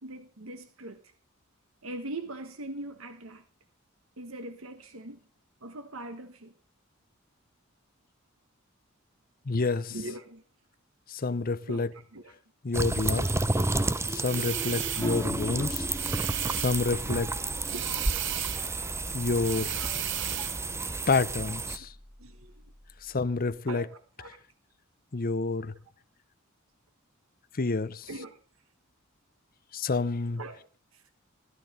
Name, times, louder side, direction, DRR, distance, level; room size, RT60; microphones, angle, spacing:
voice 1, 0.0-1.0 1.8-3.4 4.2-5.3 5.6-6.5 9.9-10.4 11.6-12.3 13.1-13.3 14.6-15.3 15.6-15.7 17.0-17.2 17.7-17.9 19.7-20.2 22.2-22.7 23.7-24.4 28.1-28.4 30.4-30.7 30.9-31.0, right 2 dB, 80° right, 1.4 m, -42 dB
voice 2, 9.5-9.9 11.1-11.9 12.6-13.3 14.1-15.9 16.5-17.3 19.1-19.8 21.1-21.9 23.0-23.9 25.1-25.7 27.5-28.1 29.7-30.4, left 3 dB, 45° left, 0.7 m, -28 dB
sound 1, 12.7-21.8, right 2 dB, 15° right, 0.6 m, -31 dB
sound 2, 14.2-15.3 15.9-17.0 17.6-18.8 19.4-20.7, right 14 dB, 60° right, 0.6 m, -35 dB
sound 3, 15.0-23.6, left 1 dB, 10° left, 1.3 m, -42 dB
14.5 x 13.0 x 5.4 m
head